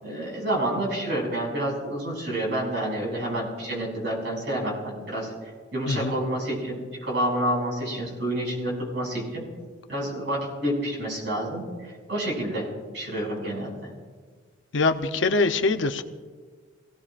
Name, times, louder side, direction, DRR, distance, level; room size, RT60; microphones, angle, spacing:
voice 1, 0.0-5.3 5.7-9.4 9.9-12.6 12.9-13.9, right 1 dB, 60° right, -3 dB, 6.0 m, -29 dB
voice 2, 14.7-16.0, left 3 dB, 65° left, 8 dB, 0.8 m, -23 dB
25.5 x 17.5 x 2.5 m, 1.5 s
head